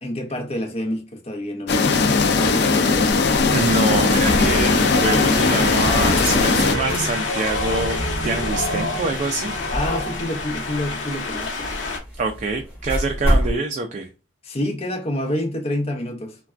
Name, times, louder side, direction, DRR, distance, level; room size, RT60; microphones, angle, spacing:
voice 1, 0.0-3.1 9.7-11.7 14.4-16.4, left 1 dB, 35° left, 0.7 m, -28 dB
sound 1, 1.7-6.8, left 4 dB, 60° left, 0.4 m, -19 dB
sound 2, 3.1-13.6, equal, 10° right, 1.4 m, -30 dB
voice 2, 3.5-8.0 8.2-9.5 12.2-14.1, right 3 dB, 40° right, 0.4 m, -25 dB
Wind, 4.2-12.0, left 2 dB, 85° left, 0.8 m, -26 dB
3.3 x 2.2 x 2.4 m
head